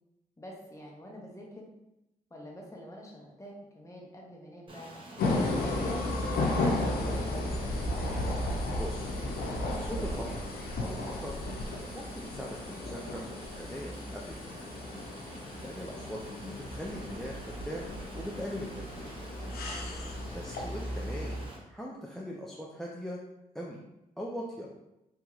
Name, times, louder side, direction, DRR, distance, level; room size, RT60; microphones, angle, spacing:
voice 1, 0.4-1.7 2.3-4.9 5.5-7.0 19.7-20.1, equal, 20° left, -2 dB, 0.8 m, -46 dB
Stream, 4.7-21.6, right 1 dB, 35° right, 0.8 m, -48 dB
sound 1, 5.2-21.5, left 2 dB, 85° left, 0.4 m, -34 dB
voice 2, 8.7-9.1 9.8-10.4 10.8-11.4 11.9-13.2 13.6-14.5 15.4-19.1 20.3-21.4 21.7-23.2 23.5-23.8 24.2-24.7, equal, ahead, -3 dB, 0.4 m, -40 dB
2.9 x 2.8 x 2.4 m, 0.90 s
cardioid pair, 60°, 15 cm